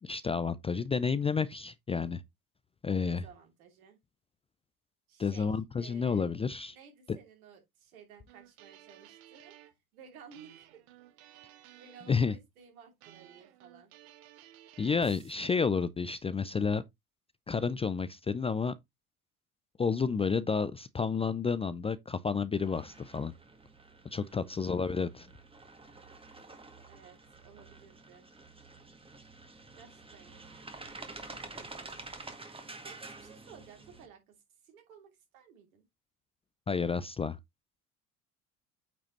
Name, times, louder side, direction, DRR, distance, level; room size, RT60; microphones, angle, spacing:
voice 1, 0.0-2.2 2.8-3.2 5.2-6.8 12.1-12.3 14.8-16.8 17.5-18.7 19.8-23.3 24.1-25.3 36.7-37.4, left 5 dB, 15° left, 0.4 m, -30 dB
voice 2, 3.0-4.0 5.1-5.5 5.8-6.3 6.7-9.6 9.9-10.8 11.4-13.9 24.2-24.7 26.9-28.3 29.7-30.7 31.2-32.0 32.6-34.4 34.6-35.8, right 7 dB, 75° right, 3.0 m, -56 dB
sound 1, 8.3-9.8 10.3-12.4 13.0-15.3, right 13 dB, 55° right, 1.4 m, -55 dB
sound 2, 22.6-34.1, right 3 dB, 10° right, 1.6 m, -49 dB
9.1 x 4.9 x 3.0 m
figure-of-eight pair, 65°, 43 cm